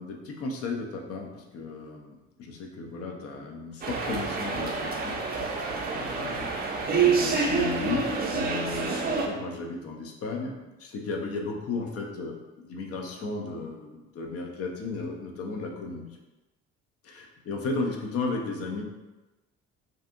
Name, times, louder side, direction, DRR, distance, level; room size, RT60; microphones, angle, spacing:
voice 1, 0.0-5.6 5.9-6.6 6.9-16.1 17.0-18.8, left 3 dB, 50° left, 1 dB, 0.6 m, -35 dB
sound 1, 3.8-9.3, right 5 dB, 30° right, 0.5 m, -27 dB
2.6 x 2.4 x 2.5 m, 1.1 s
supercardioid pair, 65°, 31 cm